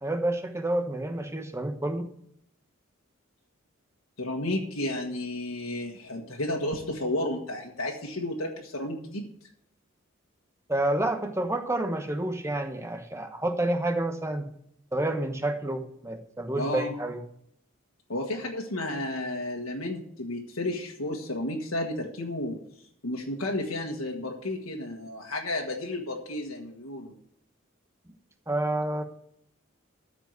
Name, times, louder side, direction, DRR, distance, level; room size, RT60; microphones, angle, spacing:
voice 1, 0.0-2.1 10.7-14.5 14.9-17.2 28.5-29.0, right 1 dB, 15° right, 6 dB, 1.1 m, -29 dB
voice 2, 4.2-9.3 16.6-16.9 18.1-22.6 23.0-27.1, left 1 dB, 85° left, -1 dB, 1.6 m, -32 dB
14.0 x 5.0 x 8.1 m, 0.71 s
head